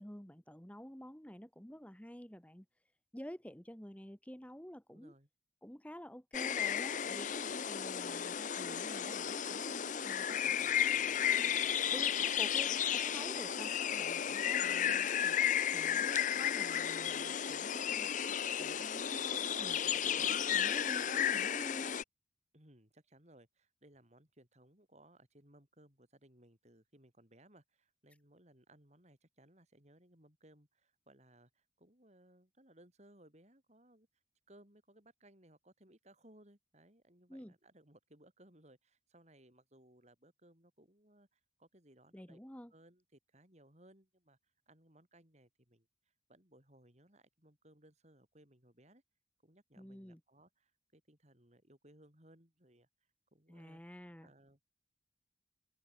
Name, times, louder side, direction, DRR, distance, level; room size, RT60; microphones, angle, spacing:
voice 1, 0.0-2.6 3.1-5.1 5.6-10.8 11.2-11.5 11.9-15.4 15.7-18.1 18.6-22.0 37.3-37.5 42.1-42.7 49.8-50.2 53.5-54.3, equal, 10° left, 1.5 m, -50 dB
voice 2, 4.9-5.3 10.5-11.3 20.2-20.4 22.5-34.2 34.5-42.4 42.7-49.0 49.4-53.8 54.2-54.6, right 1 dB, 40° right, 6.8 m, -64 dB
sound 1, 6.3-22.0, left 9 dB, 45° left, 0.6 m, -33 dB
open air
head